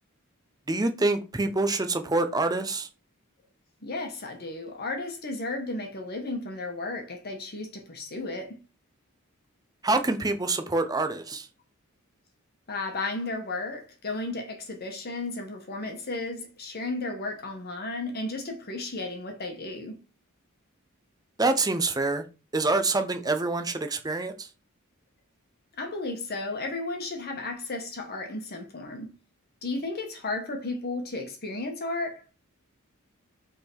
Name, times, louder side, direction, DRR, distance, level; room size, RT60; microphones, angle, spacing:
voice 1, 0.7-2.9 9.8-11.5 21.4-22.2 22.5-24.5, right 3 dB, 20° right, 0.7 m, -26 dB
voice 2, 3.8-8.6 12.7-20.0 25.8-29.1 29.6-32.2, left 2 dB, 45° left, 1.2 m, -34 dB
5.6 x 3.7 x 4.5 m
head